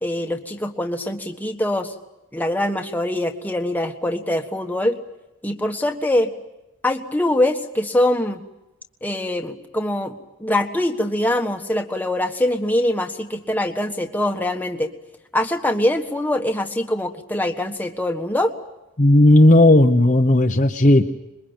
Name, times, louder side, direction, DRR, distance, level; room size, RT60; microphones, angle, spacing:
voice 1, 0.0-1.9 2.3-5.0 5.4-6.3 6.8-8.4 9.0-14.9 15.3-18.5, left 1 dB, 10° left, 4 dB, 1.4 m, -23 dB
voice 2, 19.0-21.1, left 1 dB, 35° left, 4 dB, 0.9 m, -13 dB
26.5 x 22.0 x 8.9 m, 0.95 s
head